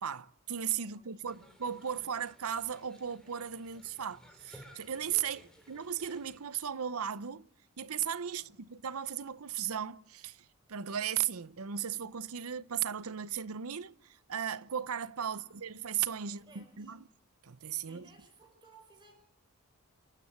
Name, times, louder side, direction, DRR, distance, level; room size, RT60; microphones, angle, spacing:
voice 1, 0.0-7.5 7.8-17.0 17.4-18.1, right 9 dB, 80° right, 0.7 m, -36 dB
voice 2, 0.8-2.1 3.7-3.9 5.4-5.7 8.3-8.6 15.2-15.5 16.2-17.0 17.8-19.1, right 3 dB, 20° right, 5.2 m, -61 dB
sound 1, 1.3-6.4, equal, 5° left, 3.3 m, -58 dB
29.0 x 10.5 x 9.5 m
head